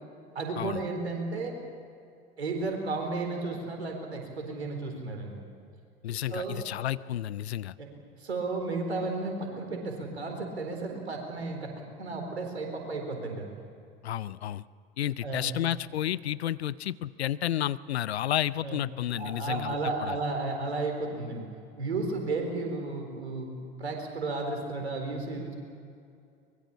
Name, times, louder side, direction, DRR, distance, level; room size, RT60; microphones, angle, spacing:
voice 1, 0.3-1.6 2.4-5.4 6.3-6.6 7.8-7.9 8.2-11.7 12.0-13.5 15.2-15.5 18.6-18.8 19.2-23.5 23.8-25.6, right 3 dB, 85° right, 3 dB, 4.3 m, -33 dB
voice 2, 6.0-7.7 14.0-14.6 15.0-19.8 20.0-20.2, left 12 dB, 80° left, 19 dB, 0.7 m, -31 dB
24.0 x 22.0 x 7.2 m, 2.5 s
figure-of-eight pair, 75°, 32 cm